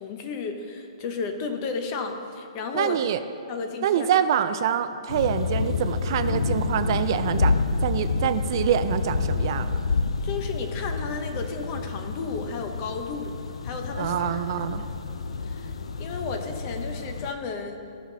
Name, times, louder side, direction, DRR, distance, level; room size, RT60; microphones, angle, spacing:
voice 1, 0.0-3.0 3.5-4.1 10.2-13.3 13.6-14.4 15.5-15.7 16.0-17.8, left 4 dB, 30° left, 5 dB, 0.9 m, -33 dB
voice 2, 2.7-3.2 3.8-7.5 7.8-9.8 14.0-14.8, right 9 dB, 45° right, 11 dB, 0.4 m, -25 dB
sound 1, 5.1-17.3, left 4 dB, 85° left, 0.6 m, -28 dB
14.5 x 5.7 x 4.1 m, 2.5 s
hypercardioid pair, 155°, 3 cm